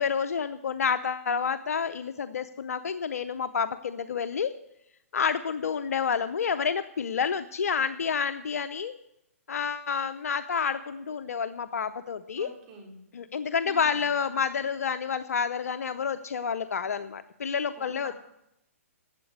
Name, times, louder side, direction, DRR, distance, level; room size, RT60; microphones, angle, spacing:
voice 1, 0.0-4.5 5.1-8.9 9.5-12.5 13.1-18.1, left 6 dB, 80° left, 11 dB, 0.6 m, -29 dB
voice 2, 12.4-13.0 13.6-14.0 17.8-18.1, right 4 dB, 40° right, 1 dB, 4.0 m, -47 dB
12.0 x 8.2 x 8.0 m, 0.82 s
hypercardioid pair, 135°, 8 cm